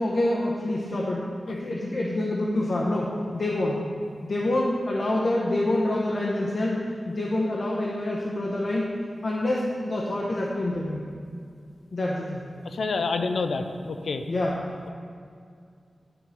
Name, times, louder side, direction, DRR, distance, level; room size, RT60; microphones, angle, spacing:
voice 1, 0.0-3.8 4.2-8.9 9.2-11.0 11.9-12.4 14.3-14.6, left 1 dB, 55° left, -4 dB, 0.9 m, -26 dB
voice 2, 12.6-14.2, left 4 dB, 90° left, 7 dB, 0.5 m, -28 dB
11.0 x 3.7 x 5.2 m, 2.2 s
wide cardioid pair, 120°, 0 cm